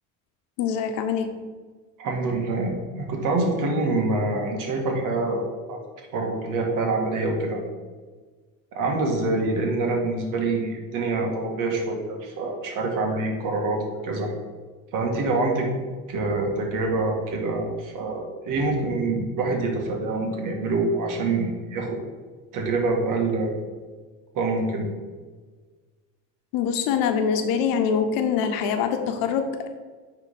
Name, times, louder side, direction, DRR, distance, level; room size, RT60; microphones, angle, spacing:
voice 1, 0.6-1.3 9.3-9.4 26.5-29.7, left 7 dB, 80° left, 6 dB, 1.0 m, -24 dB
voice 2, 2.0-5.8 6.1-7.6 8.7-14.3 14.9-15.7 16.1-22.0 22.5-23.6 24.3-24.9, right 3 dB, 65° right, 1 dB, 1.9 m, -26 dB
9.3 x 3.8 x 5.1 m, 1.4 s
cardioid pair, 110°, 34 cm